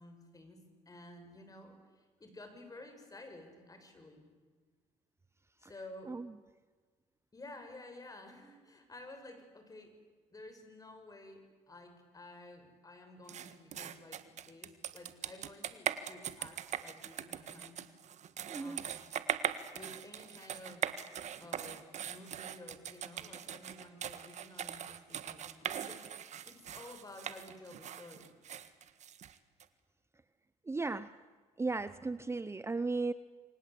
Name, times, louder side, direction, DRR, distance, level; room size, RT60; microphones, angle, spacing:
voice 1, 0.0-4.2 5.6-6.2 7.3-9.9 10.3-17.8 18.6-19.1 19.7-20.9 21.4-26.0 26.4-28.3, left 2 dB, 25° left, 6 dB, 6.9 m, -52 dB
sound 1, 13.3-29.6, right 9 dB, 60° right, 1.7 m, -41 dB
voice 2, 18.5-18.8 30.7-31.1 31.6-33.1, right 3 dB, 20° right, 14 dB, 0.8 m, -35 dB
29.0 x 24.0 x 8.5 m, 1.4 s
cardioid pair, 80°, 13 cm